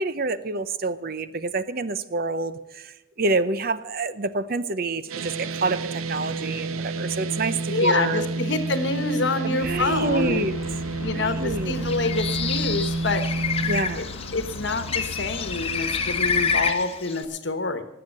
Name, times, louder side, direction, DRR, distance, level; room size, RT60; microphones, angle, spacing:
voice 1, 0.0-8.3 9.4-10.5 11.1-11.7 13.7-14.1, right 3 dB, 45° right, 13 dB, 0.6 m, -27 dB
sound 1, 5.1-13.8, right 3 dB, 90° right, 0.8 m, -30 dB
voice 2, 7.7-10.6 11.0-13.2 13.6-13.7 14.0-14.1 14.3-17.8, left 3 dB, 55° left, 9 dB, 1.2 m, -27 dB
sound 2, 9.6-16.7, left 2 dB, 85° left, 0.9 m, -37 dB
Bird, 11.7-17.2, left 6 dB, 30° left, 1.0 m, -28 dB
19.0 x 7.8 x 6.6 m, 1.0 s
head